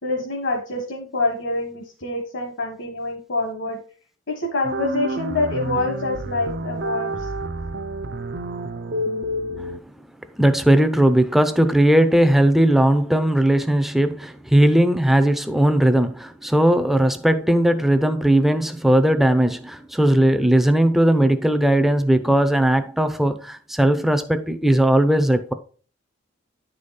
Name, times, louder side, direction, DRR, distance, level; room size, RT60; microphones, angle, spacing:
voice 1, 0.0-3.8 4.3-7.3, left 2 dB, 65° left, 1.5 m, -26 dB
sound 1, 4.6-9.8, right 1 dB, 55° right, 0.6 m, -29 dB
voice 2, 10.4-25.5, right 1 dB, ahead, 0.6 m, -18 dB
10.0 x 5.0 x 4.1 m
head